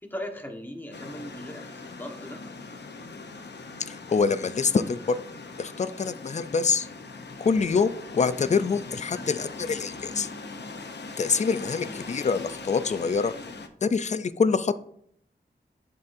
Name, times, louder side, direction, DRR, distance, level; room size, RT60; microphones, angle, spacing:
voice 1, 0.0-2.4 9.1-9.4 11.7-12.0, equal, 10° left, 2 dB, 1.2 m, -39 dB
sound 1, 0.9-13.7, left 3 dB, 70° left, 0.7 m, -41 dB
voice 2, 3.9-5.2 5.6-6.9 7.4-10.3 11.2-13.3 13.8-14.7, left 5 dB, 40° left, 13 dB, 0.4 m, -25 dB
10.5 x 4.1 x 2.6 m, 0.67 s
wide cardioid pair, 80°, 18 cm